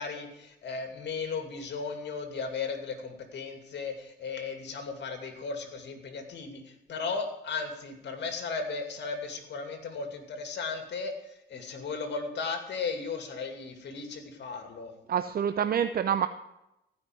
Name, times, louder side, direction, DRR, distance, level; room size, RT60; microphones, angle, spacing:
voice 1, 0.0-14.9, left 4 dB, 60° left, 6 dB, 2.6 m, -36 dB
voice 2, 15.1-16.3, right 8 dB, 50° right, 10 dB, 0.7 m, -27 dB
15.5 x 5.8 x 9.3 m, 0.89 s
cardioid pair, 90°, 20 cm